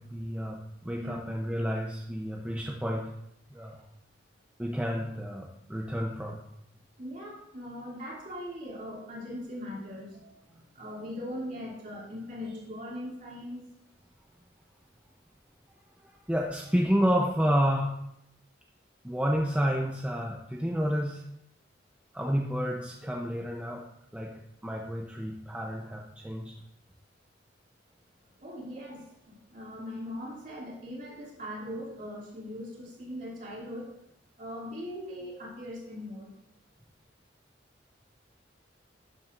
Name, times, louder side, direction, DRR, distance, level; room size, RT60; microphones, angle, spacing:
voice 1, 0.0-3.2 3.5-3.8 4.6-6.5 16.0-17.9 19.0-21.2 22.1-23.9 24.1-26.5, equal, 5° right, -1 dB, 0.7 m, -30 dB
voice 2, 7.0-13.7 28.4-33.9 34.4-36.3, left 1 dB, 45° right, -4 dB, 2.8 m, -40 dB
11.5 x 7.4 x 2.6 m, 0.77 s
head